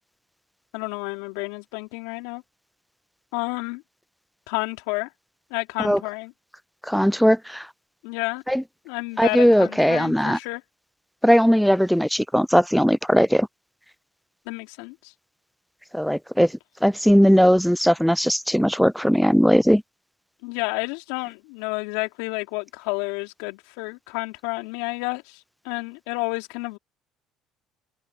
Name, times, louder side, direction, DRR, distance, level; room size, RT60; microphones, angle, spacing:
voice 1, 0.7-2.4 3.3-3.8 4.5-5.1 5.5-6.3 8.0-8.4 8.9-10.6 14.5-15.1 20.4-26.8, left 27 dB, 75° left, 3.5 m, -30 dB
voice 2, 6.8-7.7 8.5-8.6 9.2-10.4 11.2-13.5 15.9-19.8, equal, ahead, 0.5 m, -19 dB
open air
hypercardioid pair, 70°, 0 cm